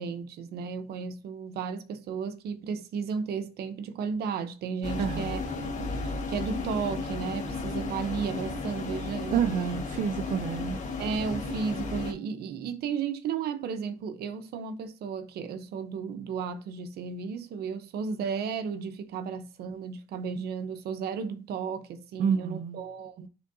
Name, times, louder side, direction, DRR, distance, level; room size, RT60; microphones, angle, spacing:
voice 1, 0.0-9.4 11.0-23.3, right 6 dB, 70° right, 1.0 m, -34 dB
sound 1, 4.8-12.1, left 3 dB, 45° left, 1.5 m, -34 dB
voice 2, 5.0-5.3 9.3-10.8 22.2-22.8, right 7 dB, 50° right, 0.6 m, -28 dB
10.5 x 3.7 x 2.7 m
cardioid pair, 110°, 17 cm